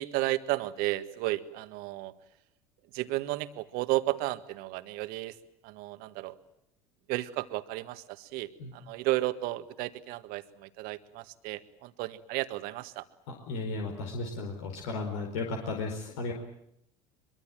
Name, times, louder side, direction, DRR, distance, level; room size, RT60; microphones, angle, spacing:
voice 1, 0.0-2.1 2.9-5.4 5.6-6.4 7.1-13.1, right 17 dB, 65° right, 12 dB, 1.7 m, -33 dB
voice 2, 13.3-16.3, left 3 dB, 75° left, 2 dB, 4.8 m, -35 dB
23.5 x 23.5 x 9.1 m, 0.77 s
hypercardioid pair, 75°, 17 cm